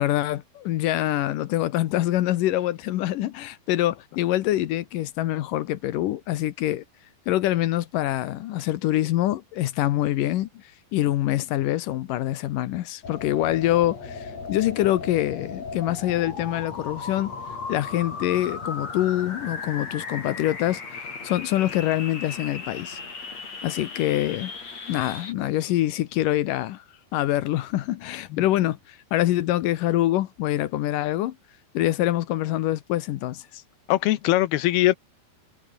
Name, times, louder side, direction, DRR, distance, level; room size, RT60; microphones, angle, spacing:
voice 1, 0.0-6.8 7.3-10.5 10.9-17.3 17.7-23.0 23.6-24.5 24.9-26.8 27.1-31.4 31.7-33.6, left 14 dB, 70° left, 2.3 m, -25 dB
sound 1, 13.0-25.3, left 4 dB, 45° left, 6.0 m, -36 dB
voice 2, 33.9-35.0, left 16 dB, 90° left, 2.9 m, -21 dB
omnidirectional pair, 4.4 m